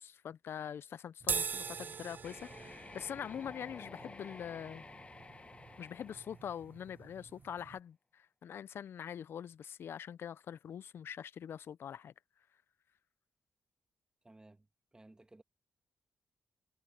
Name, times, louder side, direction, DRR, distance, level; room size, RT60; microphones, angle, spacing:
voice 1, 0.0-4.8 5.8-12.1, left 8 dB, 70° left, 0.4 m, -44 dB
sound 1, 1.2-7.8, right 6 dB, 50° right, 0.4 m, -43 dB
sound 2, 2.2-7.1, left 3 dB, 30° left, 1.3 m, -52 dB
voice 2, 14.2-15.4, right 2 dB, 20° right, 2.0 m, -59 dB
cardioid pair, 75°, 4 cm